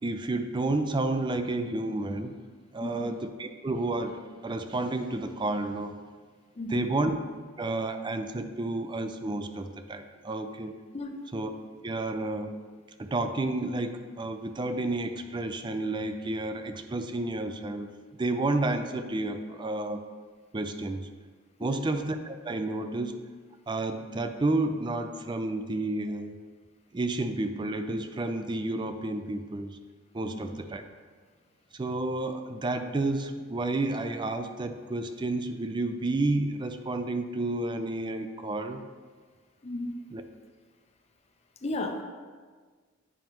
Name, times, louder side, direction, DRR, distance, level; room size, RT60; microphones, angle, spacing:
voice 1, 0.0-2.3 2.7-6.0 6.7-7.2 7.6-10.8 11.3-11.5 11.8-12.6 13.0-20.0 20.5-21.1 21.6-23.2 23.7-26.4 26.9-29.8 30.1-30.8 31.7-38.8 40.1-40.2, right 2 dB, 25° right, 8 dB, 0.4 m, -31 dB
voice 2, 2.8-3.1 6.6-6.9 10.9-11.2 21.6-21.9 30.2-30.5 39.6-40.0 41.6-42.0, left 1 dB, 35° left, 4 dB, 0.6 m, -34 dB
9.2 x 5.3 x 3.0 m, 1.5 s
head